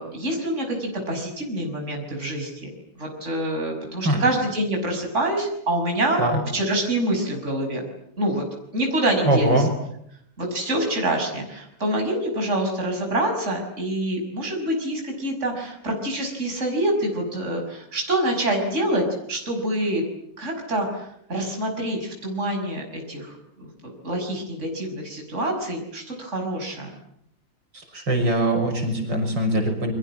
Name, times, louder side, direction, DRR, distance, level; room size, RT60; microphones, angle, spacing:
voice 1, 0.0-6.2 6.5-7.8 8.2-8.4 8.7-9.7 10.4-20.0 20.4-26.9, right 1 dB, 35° right, 2 dB, 6.2 m, -26 dB
voice 2, 9.2-9.7 27.7-29.9, right 1 dB, 70° right, 4 dB, 6.9 m, -22 dB
29.5 x 24.5 x 7.5 m, 0.74 s
omnidirectional pair, 2.1 m